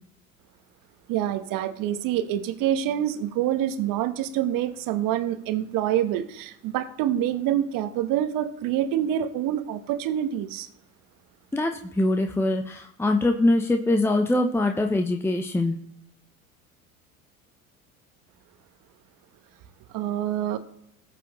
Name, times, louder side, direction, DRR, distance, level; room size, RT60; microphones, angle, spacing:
voice 1, 1.1-10.7 19.9-20.6, right 11 dB, 50° right, 10 dB, 1.2 m, -26 dB
voice 2, 11.5-15.8, left 2 dB, 5° left, 4 dB, 0.8 m, -23 dB
19.0 x 6.8 x 3.1 m, 0.73 s
hypercardioid pair, 75°, 42 cm